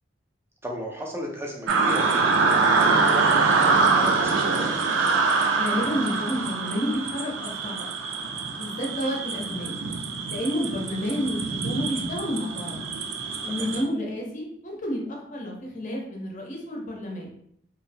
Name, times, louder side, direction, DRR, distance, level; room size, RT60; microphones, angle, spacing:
voice 1, 0.6-2.5 2.8-4.5 13.4-13.7, equal, 15° right, -1 dB, 0.4 m, -35 dB
sound 1, 1.7-13.8, right 4 dB, 85° right, 0.4 m, -24 dB
voice 2, 5.5-7.9 8.6-9.7 10.3-12.8 13.4-17.3, equal, 40° left, -1 dB, 0.6 m, -30 dB
2.7 x 2.0 x 2.6 m, 0.71 s
head